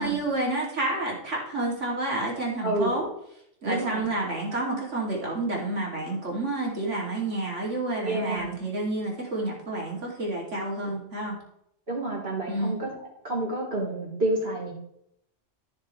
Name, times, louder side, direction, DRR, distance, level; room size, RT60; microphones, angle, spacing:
voice 1, 0.0-3.1 3.6-11.4 12.5-12.8, right 2 dB, 80° right, -2 dB, 3.1 m, -29 dB
voice 2, 2.6-2.9 3.7-4.1 8.0-8.5 10.8-10.9 11.9-12.9 13.2-14.7, right 2 dB, 55° right, -5 dB, 3.8 m, -29 dB
14.5 x 6.6 x 3.2 m, 0.75 s
omnidirectional pair, 1.2 m